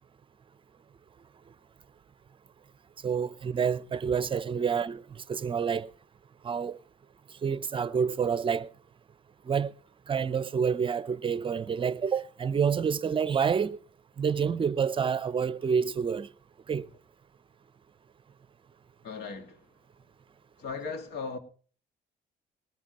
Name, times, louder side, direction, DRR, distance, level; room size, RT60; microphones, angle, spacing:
voice 1, 3.0-5.0 5.3-5.9 6.4-6.8 7.4-8.7 9.5-9.7 10.1-13.8 14.2-16.3 16.7-16.9, right 6 dB, 30° right, 0.6 m, -28 dB
voice 2, 19.0-19.6 20.6-21.4, left 4 dB, 75° left, 2.1 m, -37 dB
19.5 x 14.0 x 3.0 m
cardioid pair, 110°, 17 cm